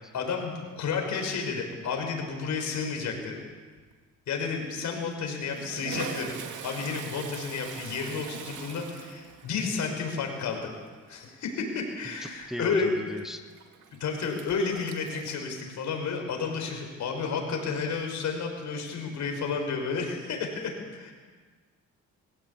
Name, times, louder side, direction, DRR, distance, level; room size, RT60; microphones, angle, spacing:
voice 1, 0.0-3.4 4.3-10.7 11.1-12.9 13.9-21.1, left 5 dB, 70° left, 2 dB, 5.9 m, -31 dB
Toilet flush, 3.1-3.5 3.8-3.9 4.9-15.4, right 8 dB, 80° right, 2.2 m, -43 dB
voice 2, 12.2-13.4, equal, ahead, 6 dB, 1.2 m, -38 dB
22.0 x 17.0 x 8.6 m, 1.5 s
cardioid pair, 90°, 30 cm